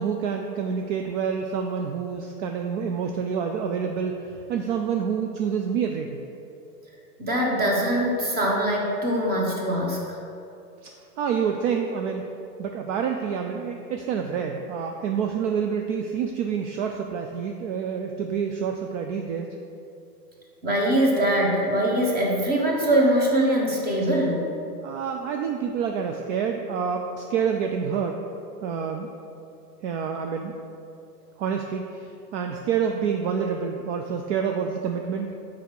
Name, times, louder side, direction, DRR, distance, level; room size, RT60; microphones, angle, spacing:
voice 1, 0.0-6.2 10.8-10.9 11.2-12.2 12.6-19.5 24.8-28.2 28.6-29.1 29.8-30.6 31.4-35.3, right 7 dB, 50° right, 4 dB, 0.6 m, -28 dB
voice 2, 7.2-10.2 20.6-24.5, right 1 dB, 20° right, -2 dB, 1.5 m, -22 dB
5.7 x 5.1 x 6.4 m, 2.7 s
hypercardioid pair, 125°, 48 cm